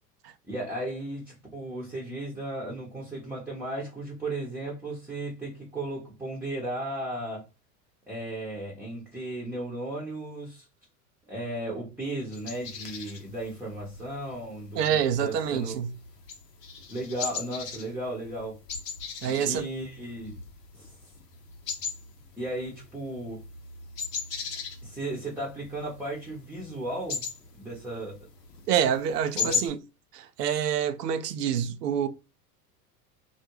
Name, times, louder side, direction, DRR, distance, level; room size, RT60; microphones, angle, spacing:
voice 1, 0.5-7.4 8.1-10.7 11.3-14.8 15.2-15.8 16.9-18.6 19.2-20.4 20.7-21.0 22.4-23.4 24.8-27.2 27.5-28.2 29.4-29.6, right 1 dB, 5° right, 0.7 m, -35 dB
sound 1, 12.3-29.7, left 6 dB, 80° left, 0.8 m, -38 dB
voice 2, 14.7-15.9 19.2-19.7 28.7-29.8 30.1-32.1, right 8 dB, 75° right, 0.6 m, -27 dB
2.4 x 2.1 x 3.0 m
figure-of-eight pair, 85°, 48 cm